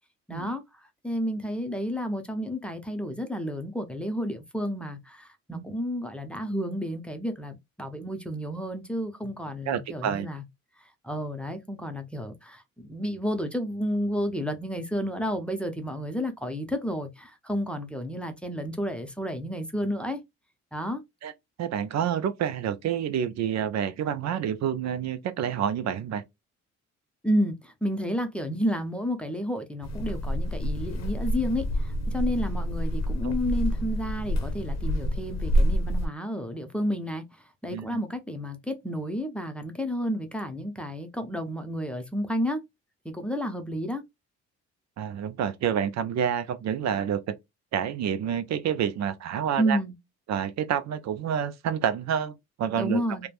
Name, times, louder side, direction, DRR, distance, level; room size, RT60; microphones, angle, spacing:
voice 1, 0.3-10.4 10.8-20.2 20.7-21.0 27.2-42.6 43.0-44.0 49.6-49.9 52.8-53.3, equal, 5° left, 0.6 m, -31 dB
voice 2, 9.7-10.3 21.2-21.3 21.6-26.2 33.2-33.4 37.7-38.0 45.0-47.3 47.7-49.8 50.3-53.3, right 8 dB, 60° right, 0.5 m, -28 dB
sound 1, 29.8-36.1, equal, 60° left, 0.7 m, -27 dB
3.1 x 2.1 x 2.4 m
cardioid pair, 90°, 30 cm